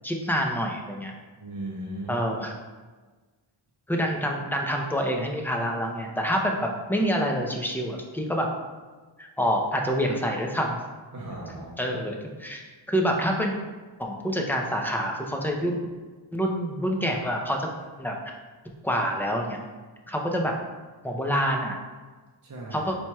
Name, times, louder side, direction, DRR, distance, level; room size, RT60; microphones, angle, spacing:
voice 1, 0.0-1.1 2.1-2.5 3.9-8.5 9.2-10.8 11.8-13.5 14.0-15.8 16.3-17.7 18.0-18.2 18.8-19.6 20.1-20.6 21.0-21.8 22.7-23.0, equal, 5° left, 1 dB, 0.6 m, -27 dB
voice 2, 1.4-2.3 7.0-7.1 11.1-11.8 22.4-22.9, right 1 dB, 35° right, -3 dB, 0.7 m, -37 dB
4.4 x 4.3 x 2.3 m, 1.3 s
wide cardioid pair, 50°, 49 cm